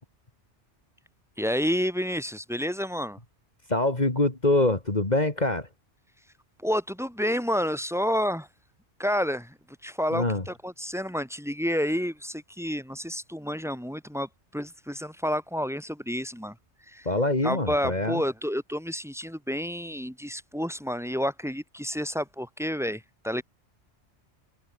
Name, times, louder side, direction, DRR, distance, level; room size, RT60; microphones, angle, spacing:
voice 1, 1.4-3.2 6.6-8.5 9.0-9.6 9.8-16.6 16.9-17.1 17.4-23.4, equal, ahead, 5.4 m, -29 dB
voice 2, 3.7-5.7 10.1-10.4 17.0-18.2, left 2 dB, 35° left, 3.2 m, -24 dB
omnidirectional pair, 1.2 m